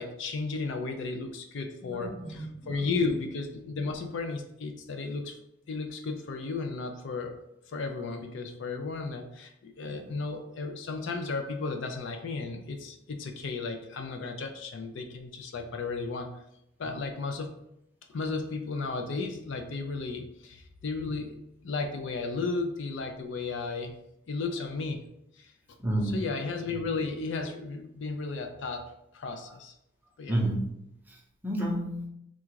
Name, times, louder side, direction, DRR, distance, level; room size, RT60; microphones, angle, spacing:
voice 1, 0.0-5.4 5.7-7.4 7.7-16.4 16.8-17.5 18.1-23.9 24.3-25.0 25.3-25.5 26.1-29.7 30.2-30.4, left 3 dB, 65° left, 5 dB, 0.4 m, -34 dB
voice 2, 1.8-2.9 9.8-10.1 16.8-16.9 25.8-26.3 30.3-30.7 31.1-32.1, right 1 dB, 10° right, -2 dB, 0.6 m, -31 dB
3.7 x 2.4 x 4.5 m, 0.82 s
head